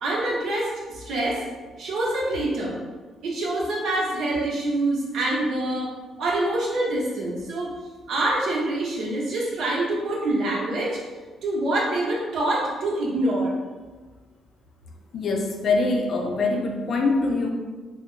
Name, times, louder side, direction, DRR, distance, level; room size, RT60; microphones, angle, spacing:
voice 1, 0.0-1.4 1.8-2.8 3.2-5.9 6.2-7.7 8.1-11.0 11.4-13.5, right 1 dB, 70° right, -4 dB, 0.8 m, -25 dB
voice 2, 15.1-17.5, left 3 dB, 55° left, 3 dB, 0.4 m, -23 dB
2.3 x 2.0 x 3.7 m, 1.4 s
cardioid pair, 90°, 0 cm